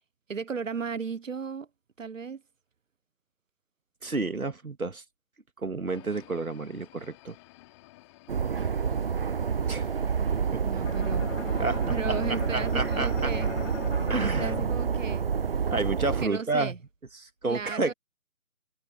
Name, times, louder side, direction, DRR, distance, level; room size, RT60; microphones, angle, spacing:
voice 1, 0.3-1.7 2.0-2.4 10.6-11.3 11.9-13.5 14.2-15.3 16.2-16.8 17.5-17.9, right 5 dB, 65° right, 1.3 m, -35 dB
voice 2, 4.0-5.0 5.6-7.4 9.7-9.9 10.5-10.9 11.6-13.3 14.1-14.5 15.7-16.8 17.1-17.9, right 3 dB, 80° right, 2.4 m, -30 dB
sound 1, 5.9-14.6, left 20 dB, 20° left, 3.6 m, -56 dB
sound 2, 8.3-16.3, right 6 dB, 45° right, 0.8 m, -28 dB
Bowed string instrument, 10.8-15.8, left 6 dB, 60° left, 1.0 m, -39 dB
figure-of-eight pair, 145°, 42 cm